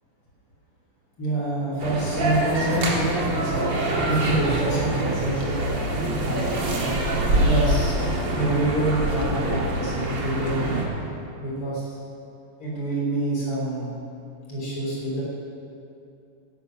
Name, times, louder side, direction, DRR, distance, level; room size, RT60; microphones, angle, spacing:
voice 1, 1.2-8.0 8.3-10.8 11.4-12.0 12.6-13.9 14.5-15.2, right 1 dB, 85° left, -5 dB, 4.6 m, -27 dB
sound 1, 1.8-10.9, right 1 dB, 55° right, 2.4 m, -25 dB
15.0 x 11.5 x 5.9 m, 2.6 s
omnidirectional pair, 2.4 m